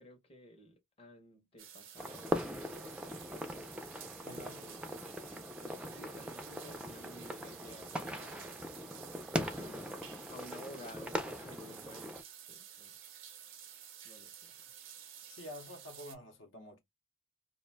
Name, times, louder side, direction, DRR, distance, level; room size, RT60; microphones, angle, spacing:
voice 1, 0.0-3.9 4.3-8.7 9.4-12.2 12.5-13.0 14.0-14.6, left 1 dB, 30° left, 0.7 m, -54 dB
sound 1, 1.6-16.1, right 9 dB, 80° right, 0.6 m, -52 dB
sound 2, 2.0-12.2, equal, 5° right, 0.3 m, -41 dB
voice 2, 4.2-4.6 15.3-16.8, left 1 dB, 75° left, 0.8 m, -48 dB
2.4 x 2.2 x 3.2 m
head